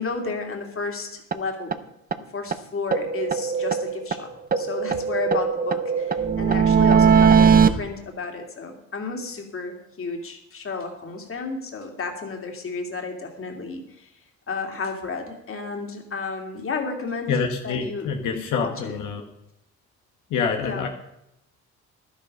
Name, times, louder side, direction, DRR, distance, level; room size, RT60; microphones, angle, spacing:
voice 1, 0.0-1.8 2.2-14.1 14.5-17.3 17.6-19.0 20.6-20.9, left 4 dB, 45° left, 3 dB, 2.7 m, -32 dB
sound 1, 1.3-1.4 1.7-1.8 2.1-2.2 2.5-2.6 2.9-4.2 4.5-7.7, right 6 dB, 30° right, 0.8 m, -19 dB
voice 2, 17.3-19.2 20.3-20.9, left 5 dB, 90° left, 2 dB, 1.4 m, -26 dB
12.0 x 10.5 x 5.3 m, 0.83 s
cardioid pair, 90°, 30 cm